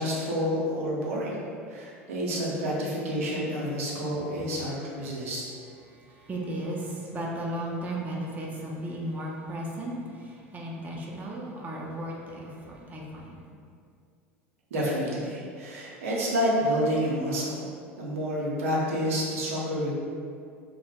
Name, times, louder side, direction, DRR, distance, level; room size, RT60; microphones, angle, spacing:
voice 1, 0.0-1.4 1.7-5.4 14.7-17.6 18.0-19.9, equal, 75° right, -5 dB, 0.5 m, -29 dB
voice 2, 5.8-13.3, right 1 dB, 20° right, -3 dB, 0.4 m, -35 dB
2.1 x 2.0 x 2.9 m, 2.3 s
hypercardioid pair, 75°, 7 cm